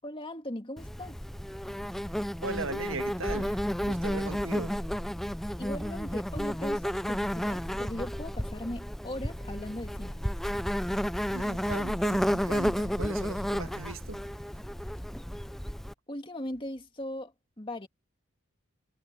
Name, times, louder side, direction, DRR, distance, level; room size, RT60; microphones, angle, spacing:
voice 1, 0.0-1.2 5.6-10.3 16.1-17.9, left 1 dB, 25° left, 2.2 m, -39 dB
Insect, 0.8-15.9, equal, ahead, 0.3 m, -32 dB
voice 2, 2.4-4.9 11.3-14.3, right 3 dB, 90° right, 1.5 m, -38 dB
head